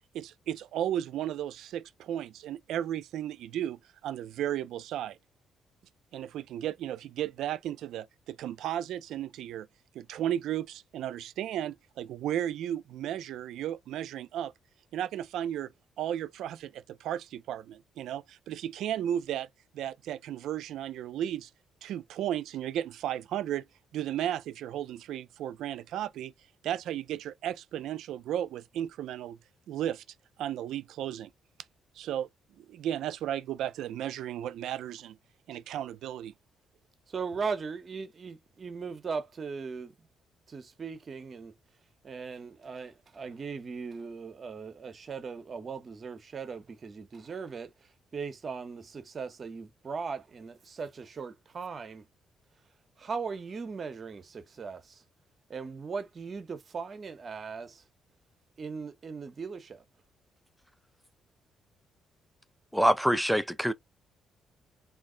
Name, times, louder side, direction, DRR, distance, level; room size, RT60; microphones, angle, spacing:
voice 1, 0.1-5.2 6.1-9.7 9.9-14.5 14.9-15.7 16.0-19.5 19.7-21.5 21.8-23.7 23.9-26.3 26.6-29.4 29.7-30.0 30.4-31.3 32.0-32.3 32.6-35.2 35.5-36.3, right 11 dB, 80° right, 0.3 m, -34 dB
voice 2, 37.1-40.1 40.5-41.5 42.0-52.0 53.0-55.0 55.5-57.8 58.6-59.8, right 5 dB, 45° right, 0.7 m, -38 dB
voice 3, 62.7-63.7, equal, ahead, 0.4 m, -24 dB
2.4 x 2.0 x 3.7 m
cardioid pair, 90°, 0 cm